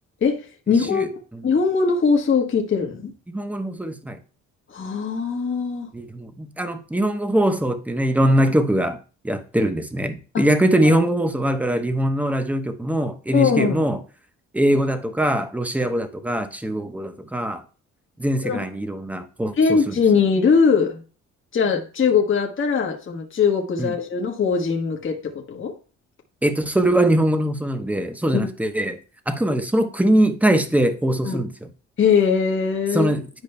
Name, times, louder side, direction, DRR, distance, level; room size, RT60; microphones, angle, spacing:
voice 1, 0.2-1.1 1.4-3.1 4.7-5.9 10.3-10.4 10.8-11.0 13.3-13.8 18.4-18.6 19.6-21.0 21.5-25.7 31.2-31.4 32.0-33.1, left 5 dB, 40° left, 1.3 m, -21 dB
voice 2, 3.3-4.2 5.9-9.0 9.2-14.0 14.5-17.6 18.2-19.9 23.8-23.9 26.4-29.0 29.3-31.7 32.9-33.2, right 1 dB, 5° right, 0.9 m, -22 dB
11.0 x 5.0 x 2.2 m
cardioid pair, 90°, 30 cm